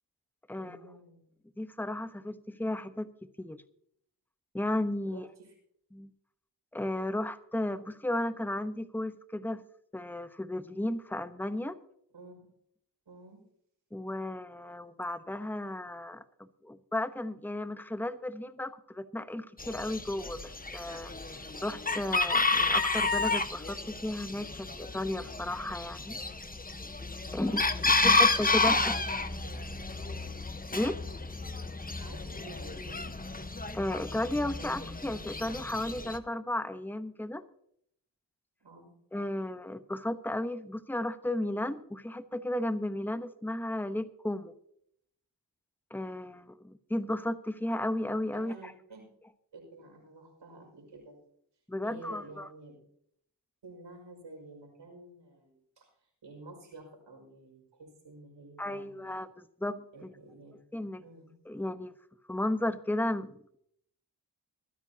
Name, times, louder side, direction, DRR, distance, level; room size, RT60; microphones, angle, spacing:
voice 1, 0.5-1.2 5.1-5.5 12.1-12.3 13.1-13.4 27.2-27.8 28.5-28.7 32.0-33.2 38.6-38.9 48.3-49.0 49.5-51.2 51.8-52.8 53.6-55.9 56.2-59.1 59.9-60.5 61.0-61.3, right 2 dB, 80° right, 1 dB, 5.9 m, -51 dB
voice 2, 1.6-3.1 3.4-3.6 4.5-5.3 5.9-6.1 6.7-9.6 9.9-11.8 13.9-21.1 21.6-26.2 27.3-29.0 30.7-31.0 33.7-37.4 39.1-44.5 45.9-48.7 51.7-52.5 58.6-59.8 60.7-61.0 61.5-61.9 62.3-63.6, left 1 dB, 5° left, 11 dB, 1.0 m, -34 dB
Chicken rooster, 19.6-36.2, left 3 dB, 20° left, 1.1 m, -31 dB
24.5 x 9.9 x 2.8 m, 0.70 s
cardioid pair, 40°, 43 cm